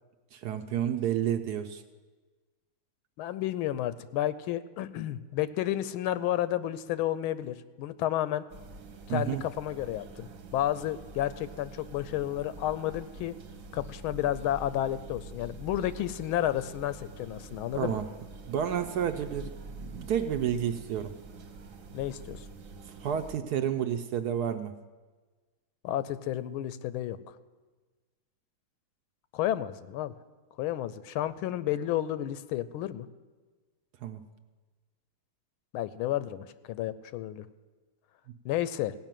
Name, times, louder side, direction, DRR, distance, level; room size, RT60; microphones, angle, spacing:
voice 1, 0.3-1.8 9.1-9.4 17.7-18.1 18.5-21.1 23.0-24.7 34.0-34.2, right 9 dB, 70° right, 8 dB, 0.9 m, -30 dB
voice 2, 3.2-8.4 9.1-13.3 13.7-18.0 21.9-22.5 25.8-27.4 29.3-30.1 30.6-33.1 35.7-37.5 38.4-38.9, left 12 dB, 90° left, 15 dB, 1.5 m, -31 dB
sound 1, 8.5-23.4, right 2 dB, 50° right, 1.2 m, -46 dB
16.5 x 5.7 x 9.0 m, 1.3 s
omnidirectional pair, 2.2 m